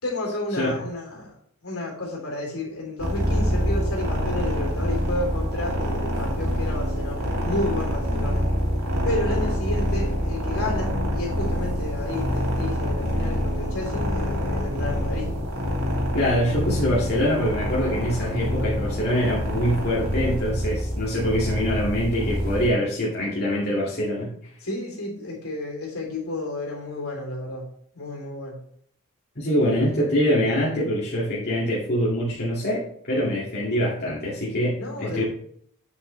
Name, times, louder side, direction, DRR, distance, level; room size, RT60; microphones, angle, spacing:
voice 1, 0.0-1.3 1.6-8.5 9.0-15.3 24.6-27.6 27.9-28.6 34.8-35.2, left 2 dB, 70° left, -1 dB, 3.4 m, -31 dB
sound 1, 3.0-22.7, equal, 90° right, 2.8 m, -26 dB
voice 2, 16.1-24.3 29.4-35.2, equal, 45° left, -7 dB, 2.2 m, -24 dB
8.3 x 7.3 x 3.3 m, 0.65 s
head